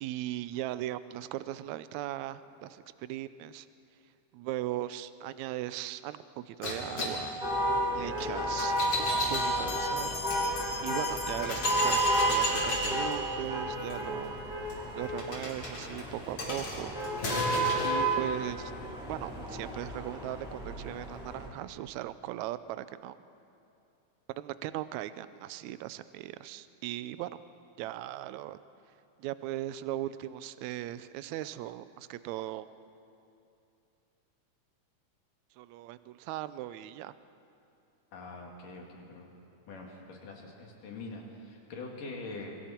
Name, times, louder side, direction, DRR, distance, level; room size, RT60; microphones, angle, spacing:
voice 1, 0.0-3.7 4.3-7.4 7.9-10.2 10.8-12.0 12.3-14.4 15.0-17.0 17.8-18.7 19.1-23.2 24.4-27.4 27.8-28.6 29.2-32.7 35.6-37.1, right 14 dB, 80° right, 14 dB, 1.8 m, -38 dB
sound 1, 6.6-10.4 11.0-11.1 11.4-17.9, left 1 dB, 45° left, 4.2 m, -35 dB
sound 2, 7.4-21.5, right 1 dB, ahead, 4.3 m, -32 dB
Bell, 9.2-13.0, left 5 dB, 70° left, 3.5 m, -41 dB
voice 2, 38.1-39.3 39.7-42.6, left 3 dB, 90° left, 0 dB, 4.1 m, -44 dB
27.5 x 24.0 x 4.5 m, 2.7 s
omnidirectional pair, 3.6 m